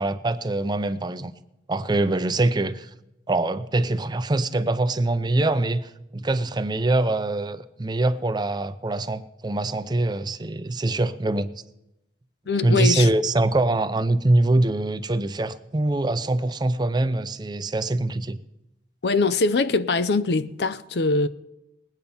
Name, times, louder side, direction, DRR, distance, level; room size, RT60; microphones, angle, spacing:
voice 1, 0.0-1.3 1.7-2.9 3.3-11.5 12.6-18.4, right 2 dB, 25° right, 0.5 m, -23 dB
voice 2, 12.5-13.1 19.0-21.3, left 3 dB, 65° left, 0.6 m, -22 dB
20.0 x 8.8 x 5.5 m
head